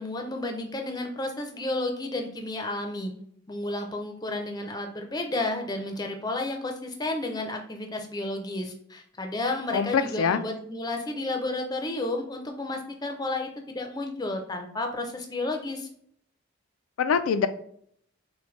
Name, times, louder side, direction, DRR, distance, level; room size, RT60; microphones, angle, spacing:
voice 1, 0.0-3.1 3.5-15.9, left 2 dB, 20° left, 4 dB, 0.5 m, -32 dB
voice 2, 9.7-10.4 17.0-17.5, left 6 dB, 80° left, 9 dB, 0.3 m, -24 dB
5.9 x 2.1 x 3.2 m, 0.64 s
head